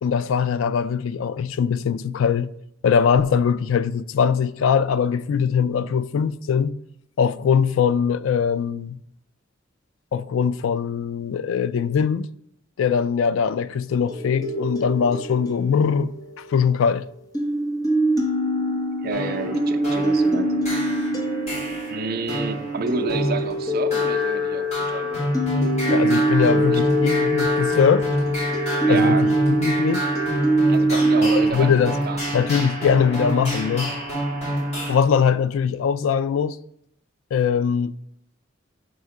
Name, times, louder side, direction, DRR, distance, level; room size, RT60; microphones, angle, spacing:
voice 1, 0.0-2.5 2.8-6.7 7.2-9.0 10.1-12.3 12.8-17.1 25.9-28.1 28.9-30.1 30.9-32.0 32.3-33.9 34.9-36.6 37.3-37.9, left 7 dB, 80° left, 0.3 m, -21 dB
sound 1, 14.1-16.9 17.3-31.5, right 1 dB, 20° left, 0.8 m, -23 dB
voice 2, 19.0-20.5 21.9-25.2 26.5-26.8 28.8-29.3 30.7-32.3, right 3 dB, 50° right, 0.5 m, -30 dB
sound 2, 19.1-34.9, equal, 35° left, 2.6 m, -28 dB
5.4 x 4.3 x 4.8 m
head